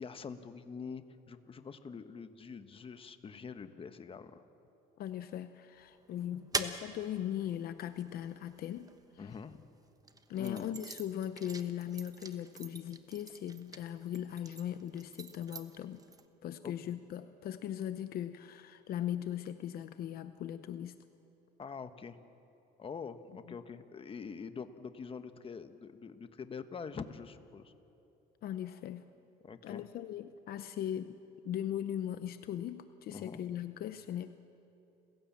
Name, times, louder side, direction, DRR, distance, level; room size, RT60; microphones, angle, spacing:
voice 1, 0.0-4.4 9.2-9.6 10.4-10.8 16.6-16.7 21.6-22.2 22.8-27.7 29.4-29.8 33.1-33.4, left 5 dB, 35° left, 10 dB, 1.2 m, -45 dB
voice 2, 5.0-8.9 10.3-16.0 16.4-21.0 23.5-23.6 28.4-29.1 29.6-31.2 31.4-34.3, left 10 dB, 65° left, 11 dB, 0.8 m, -39 dB
sound 1, 5.8-9.4 10.0-16.2, right 4 dB, 20° right, 1.2 m, -44 dB
29.5 x 16.0 x 7.4 m, 2.8 s
cardioid pair, 110°, 17 cm